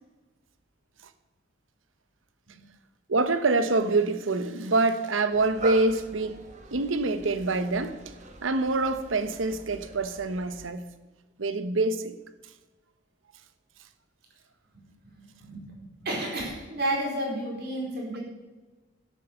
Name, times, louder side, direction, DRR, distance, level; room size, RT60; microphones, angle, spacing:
voice 1, 3.1-6.4 6.7-8.1 8.4-10.8 11.4-12.1, right 3 dB, 85° right, 0.9 m, -26 dB
sound 1, 5.3-10.7, right 3 dB, 40° right, 1.4 m, -42 dB
voice 2, 15.4-18.2, right 1 dB, 55° right, 4.4 m, -31 dB
12.5 x 8.2 x 6.7 m
head